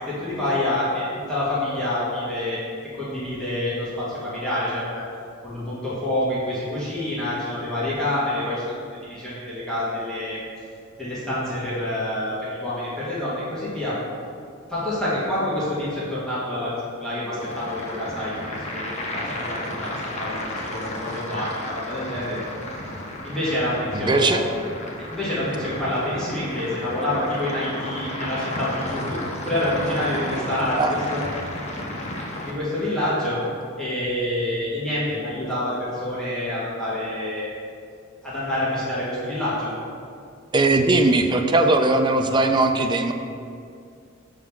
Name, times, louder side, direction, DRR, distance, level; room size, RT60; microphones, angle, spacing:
voice 1, 0.0-2.6 2.9-5.0 5.4-10.4 11.0-14.0 14.7-18.4 18.7-22.4 23.2-24.4 25.1-29.2 29.5-31.2 32.4-33.4 33.8-37.5 38.2-39.7, left 1 dB, 5° left, -11 dB, 1.6 m, -27 dB
sound 1, 17.4-32.5, left 1 dB, 35° left, 0.8 m, -33 dB
voice 2, 23.9-24.4 30.8-30.9 40.5-43.1, right 2 dB, 20° right, 5 dB, 0.4 m, -19 dB
6.2 x 3.8 x 5.9 m, 2.4 s
head